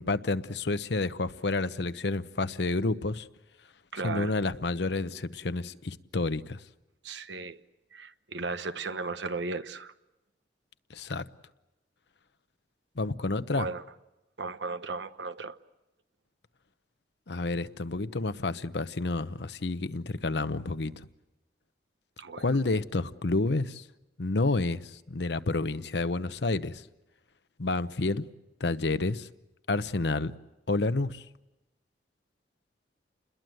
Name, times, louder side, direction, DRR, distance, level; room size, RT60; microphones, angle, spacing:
voice 1, 0.0-3.3 4.0-6.6 10.9-11.2 13.0-13.7 17.3-21.1 22.4-23.9 24.2-26.8 27.6-28.2 28.6-29.3 29.7-30.3 30.7-31.2, left 3 dB, 70° left, 0.9 m, -29 dB
voice 2, 3.9-4.3 7.0-7.6 7.9-9.9 13.5-13.8 14.4-15.6 22.2-22.4, right 3 dB, 80° right, 1.1 m, -35 dB
29.0 x 21.5 x 7.9 m
head